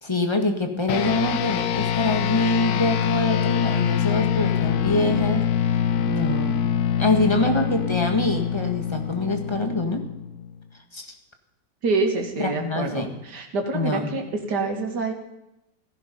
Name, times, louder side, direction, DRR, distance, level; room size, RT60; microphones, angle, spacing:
voice 1, 0.0-5.8 6.1-6.6 7.0-10.1 10.9-11.1 12.4-13.1 13.7-14.1, left 2 dB, 15° left, 5 dB, 1.8 m, -25 dB
sound 1, 0.9-10.6, left 9 dB, 65° left, 1.2 m, -24 dB
voice 2, 11.8-14.2 14.5-15.1, right 3 dB, 65° right, 3 dB, 2.7 m, -26 dB
16.0 x 15.0 x 5.5 m, 0.88 s
omnidirectional pair, 2.0 m